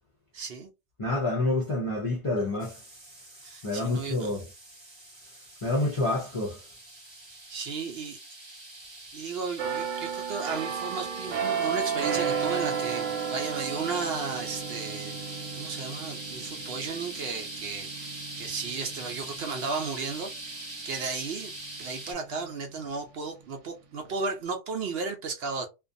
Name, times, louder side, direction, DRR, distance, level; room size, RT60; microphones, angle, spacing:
voice 1, 0.3-0.7 3.4-4.3 7.5-8.2 9.1-21.5 21.8-25.7, right 4 dB, 65° right, 0.7 m, -34 dB
voice 2, 1.0-2.8 3.6-4.4 5.6-6.6, left 2 dB, 40° left, 0.5 m, -28 dB
sound 1, 2.6-22.1, right 2 dB, 30° right, 0.6 m, -42 dB
sound 2, 9.6-21.1 21.6-21.8, right 6 dB, 85° right, 1.0 m, -33 dB
2.4 x 2.2 x 2.5 m
omnidirectional pair, 1.2 m